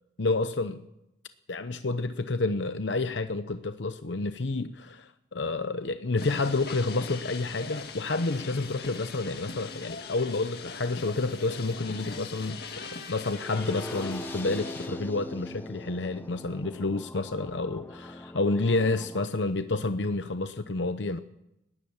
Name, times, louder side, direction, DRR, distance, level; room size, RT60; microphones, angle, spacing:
voice 1, 0.2-0.8 1.5-12.6 13.1-21.2, left 3 dB, 80° left, 10 dB, 0.8 m, -29 dB
sound 1, 6.2-14.9, left 4 dB, 60° left, 1.9 m, -41 dB
sound 2, 13.3-19.3, left 1 dB, 10° left, 0.7 m, -41 dB
20.0 x 18.5 x 7.3 m, 0.86 s
head